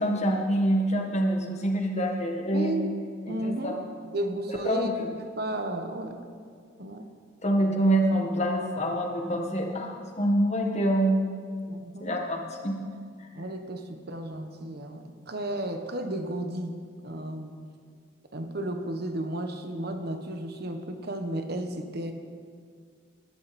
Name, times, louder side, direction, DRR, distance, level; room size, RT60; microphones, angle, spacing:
voice 1, 0.0-2.8 3.2-3.9 4.5-5.1 7.4-11.3 12.0-12.8, right 1 dB, 35° left, 2 dB, 1.7 m, -26 dB
voice 2, 2.5-2.9 3.3-3.8 4.1-4.9 5.4-6.2 6.8-7.0 11.7-12.2 13.3-17.6 18.3-22.1, right 1 dB, 55° right, 6 dB, 1.3 m, -33 dB
19.5 x 12.5 x 4.3 m, 2.1 s
head